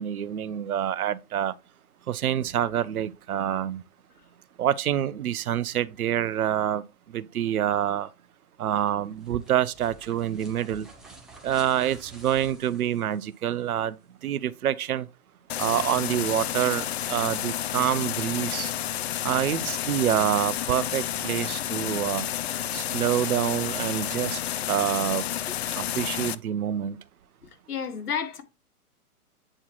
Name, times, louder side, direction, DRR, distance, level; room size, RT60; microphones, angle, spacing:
voice 1, 0.0-1.5 2.1-3.8 4.6-6.8 7.1-8.1 8.6-10.9 11.4-14.0 14.2-15.1 15.6-18.7 19.2-22.2 22.7-24.4 24.7-25.3 25.7-27.0, right 10 dB, 65° right, 0.8 m, -27 dB
sound 1, 8.8-13.7, right 2 dB, ahead, 0.5 m, -50 dB
sound 2, 15.5-26.3, left 11 dB, 45° left, 0.5 m, -30 dB
voice 2, 27.4-28.4, left 7 dB, 75° left, 2.0 m, -32 dB
8.7 x 4.4 x 3.0 m
hypercardioid pair, 135°, 46 cm